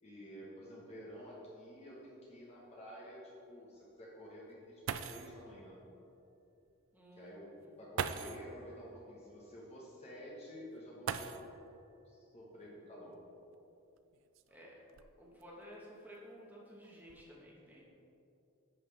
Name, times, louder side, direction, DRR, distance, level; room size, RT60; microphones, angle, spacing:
voice 1, 0.0-5.8 7.2-11.4 12.0-13.2, equal, 30° left, -6 dB, 1.2 m, -51 dB
sound 1, 1.0-1.1 1.4-1.5 2.2-2.3 4.5-4.6 4.9-5.4 6.7-6.8 7.9-8.5 11.0-11.8 13.1-13.2 14.0-15.4 16.1-16.5 16.8-17.2, right 7 dB, 60° right, 0.3 m, -41 dB
voice 2, 6.9-7.3 7.6-7.7 14.5-14.7 15.2-17.8, equal, 10° right, -4 dB, 1.4 m, -54 dB
10.5 x 5.8 x 3.4 m, 2.8 s
head